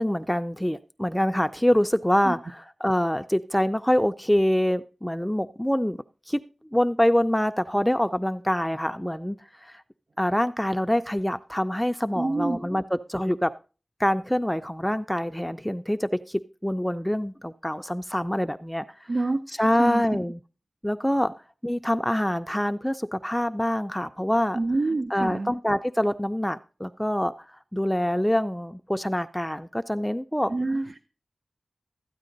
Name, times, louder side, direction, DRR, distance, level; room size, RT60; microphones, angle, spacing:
voice 1, 0.0-6.0 6.3-6.4 6.7-9.8 10.2-13.5 14.0-19.1 19.6-20.4 20.8-21.3 21.6-24.6 25.1-30.5, equal, 5° left, 10 dB, 0.4 m, -25 dB
voice 2, 12.1-12.6 19.1-20.0 24.5-25.5 30.5-31.0, right 2 dB, 65° right, 9 dB, 0.6 m, -27 dB
13.5 x 9.1 x 3.9 m, 0.36 s
wide cardioid pair, 50°, 0 cm